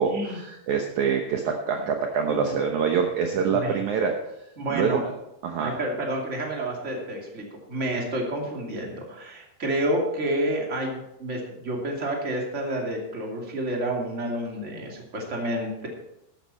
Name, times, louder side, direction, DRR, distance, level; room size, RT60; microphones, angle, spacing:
voice 1, 0.0-4.1 4.7-5.0 5.4-5.8, right 6 dB, 75° right, 3 dB, 1.8 m, -25 dB
voice 2, 2.3-2.6 3.5-3.8 4.6-5.0 5.6-15.9, right 1 dB, 20° right, 0 dB, 2.1 m, -29 dB
12.5 x 12.5 x 4.2 m, 0.86 s
omnidirectional pair, 4.8 m